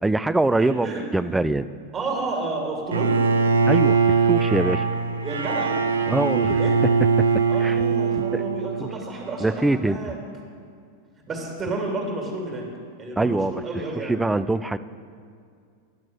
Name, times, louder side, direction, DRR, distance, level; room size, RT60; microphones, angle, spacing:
voice 1, 0.0-1.7 3.7-4.9 6.1-6.6 7.2-7.3 7.6-7.8 8.2-8.5 8.8-8.9 9.4-10.0 13.2-13.5 13.9-14.8, right 2 dB, 5° right, 14 dB, 0.3 m, -23 dB
voice 2, 0.6-1.1 1.9-3.1 5.2-5.8 6.5-6.8 7.5-10.2 11.3-12.7 13.0-14.1, right 2 dB, 25° right, 0 dB, 2.2 m, -31 dB
Bowed string instrument, 2.9-9.0, right 5 dB, 70° right, 0.6 m, -21 dB
10.5 x 6.1 x 7.5 m, 2.3 s
figure-of-eight pair, 90°, 0 cm